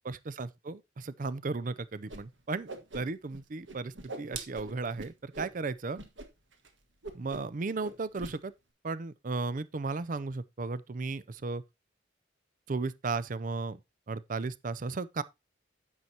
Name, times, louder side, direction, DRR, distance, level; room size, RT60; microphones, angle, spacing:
voice 1, 0.0-2.7 2.9-6.0 7.1-8.5 8.8-11.6 12.7-13.8 14.1-15.2, right 3 dB, 45° right, 0.5 m, -35 dB
Whoosh swoosh swish, 2.1-2.2 2.5-3.4 3.7-5.5 5.9-6.3 6.5-6.7 7.0-7.5 7.8-8.3, right 3 dB, 75° right, 1.6 m, -42 dB
9.6 x 7.9 x 2.8 m
head